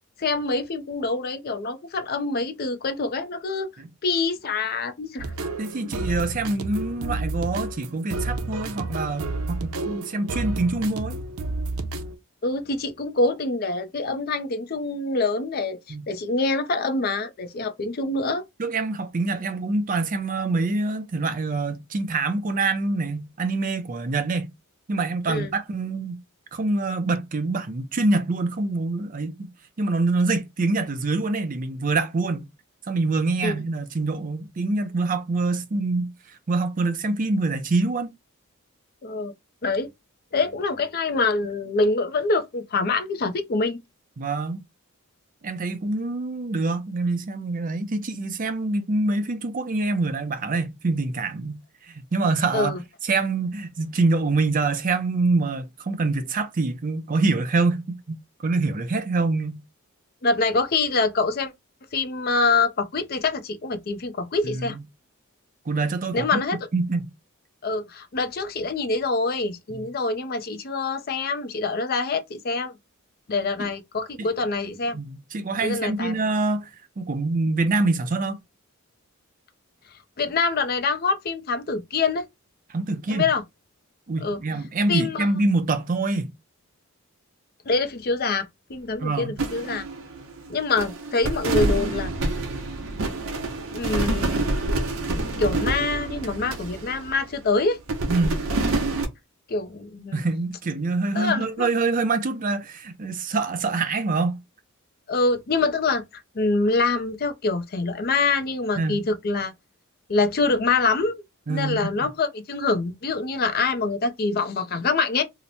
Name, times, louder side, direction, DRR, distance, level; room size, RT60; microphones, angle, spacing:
voice 1, 0.2-3.7 4.0-5.3 12.4-15.8 16.1-18.4 25.3-25.5 33.4-33.6 39.0-39.3 39.6-39.9 40.3-43.8 52.5-52.8 60.2-61.5 61.9-64.8 66.1-66.6 67.6-72.7 73.3-75.0 75.6-76.1 80.2-82.3 83.1-83.4 84.2-84.4 84.9-85.3 87.7-89.8 90.5-92.1 93.7-94.5 95.4-97.8 99.5-100.2 101.1-101.7 105.1-109.5 110.1-111.2 111.5-115.2, left 3 dB, 45° left, 0.5 m, -25 dB
sound 1, 5.2-12.2, right 2 dB, 90° right, 0.6 m, -31 dB
voice 2, 5.6-11.2 15.9-16.1 18.6-24.5 24.9-26.2 26.5-29.5 29.8-32.5 32.9-38.1 44.2-44.6 45.4-59.6 64.4-64.8 65.7-66.4 66.7-67.1 69.7-69.8 73.6-73.7 74.2-74.3 74.9-76.7 77.0-78.4 82.7-83.3 84.1-86.3 89.0-89.4 98.1-98.4 100.1-104.4 108.8-109.0 111.5-112.1, right 3 dB, 40° right, 0.5 m, -25 dB
sound 2, 89.4-90.5 90.8-97.4 97.9-99.1, right 2 dB, 65° right, 0.8 m, -27 dB
2.9 x 2.1 x 3.9 m
head